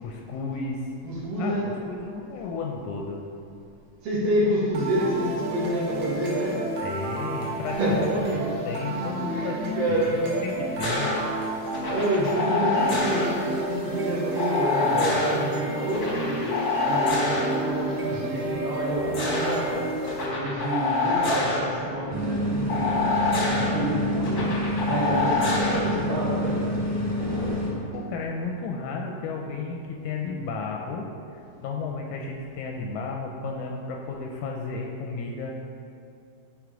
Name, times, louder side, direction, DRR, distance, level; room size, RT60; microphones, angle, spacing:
voice 1, 0.0-0.9 1.4-1.6 1.9-3.2 6.8-8.2 8.7-11.1 12.2-12.3 27.9-31.1 31.3-35.5, left 4 dB, 80° left, 0 dB, 1.9 m, -33 dB
voice 2, 1.0-1.6 4.0-6.6 7.7-8.0 8.3-8.4 9.3-10.4 11.6-19.9 20.3-23.1 23.4-26.6, right 1 dB, 75° right, -6 dB, 3.3 m, -28 dB
sound 1, 4.7-20.7, right 1 dB, 60° right, 1.8 m, -31 dB
sound 2, 10.8-11.2 11.7-13.3 14.4-15.4 15.9-17.5 18.8-19.5 20.1-21.6 22.7-23.7 24.2-25.8 27.1-27.5, left 3 dB, 55° left, 1.0 m, -26 dB
sound 3, 22.1-27.7, left 1 dB, 20° right, 1.3 m, -28 dB
11.0 x 3.9 x 4.8 m, 2.4 s
omnidirectional pair, 3.9 m